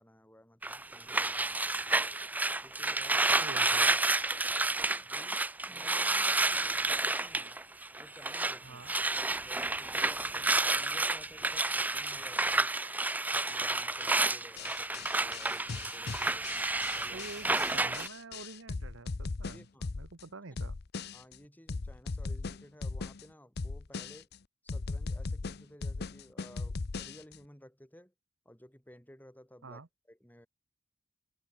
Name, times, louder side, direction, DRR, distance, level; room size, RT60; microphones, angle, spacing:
voice 1, 0.0-2.2 2.6-3.5 5.0-7.6 8.0-8.8 9.4-12.8 13.3-17.3 19.5-19.9 20.5-20.6 21.1-24.3 24.6-28.1 28.5-30.5, equal, 10° left, 5.3 m, -56 dB
sound 1, 0.6-8.6 8.8-18.1, right 2 dB, 10° right, 0.5 m, -30 dB
voice 2, 3.3-3.9 8.6-8.9 17.1-19.6 20.0-20.8 29.6-29.9, right 3 dB, 80° right, 1.1 m, -47 dB
sound 2, 14.6-20.2 20.6-21.4 21.7-23.2 23.6-24.4 24.7-27.4, left 3 dB, 55° left, 0.7 m, -38 dB
head